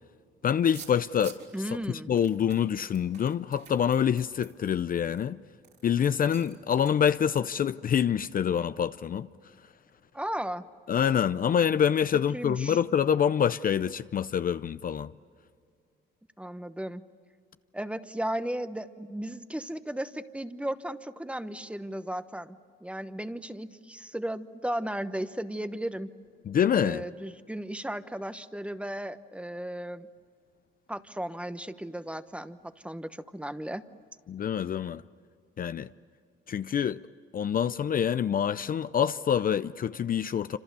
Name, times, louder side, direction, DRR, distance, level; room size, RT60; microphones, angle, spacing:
voice 1, 0.4-1.4 1.9-5.4 5.8-9.3 10.9-15.1 26.5-27.0 34.3-35.0 35.6-35.9 36.5-37.0 37.3-40.6, left 8 dB, 45° left, 0.5 m, -26 dB
sound 1, 0.6-1.6 2.2-5.2 5.6-5.8 6.3-6.6 6.9-7.0, right 6 dB, 60° right, 4.2 m, -50 dB
voice 2, 1.5-2.1 10.1-10.6 12.3-12.8 16.4-17.0 17.7-26.1 26.8-30.1 30.9-32.6 32.8-33.8, right 1 dB, 5° right, 1.1 m, -35 dB
27.5 x 26.5 x 6.9 m
cardioid pair, 90°, 20 cm